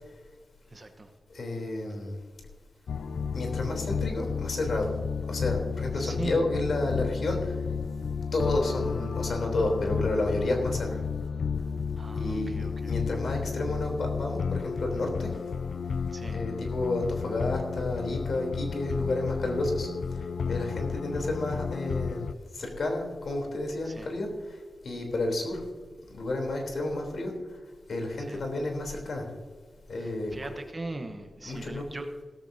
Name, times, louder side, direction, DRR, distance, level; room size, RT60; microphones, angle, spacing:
voice 1, 0.7-1.1 5.9-6.4 12.0-13.0 16.1-16.4 23.8-24.1 28.2-28.4 30.0-32.3, right 2 dB, 25° right, 6 dB, 1.0 m, -40 dB
voice 2, 1.3-2.2 3.3-4.9 5.3-7.6 8.3-11.0 12.1-15.3 16.3-19.9 20.1-22.3 22.5-25.6 26.1-27.6 27.9-29.3 29.9-30.5 31.4-31.8, left 2 dB, 65° left, 2 dB, 3.3 m, -31 dB
sound 1, 2.9-22.3, left 6 dB, 85° left, 0.5 m, -32 dB
16.5 x 14.0 x 2.7 m, 1.5 s
wide cardioid pair, 145°, 0 cm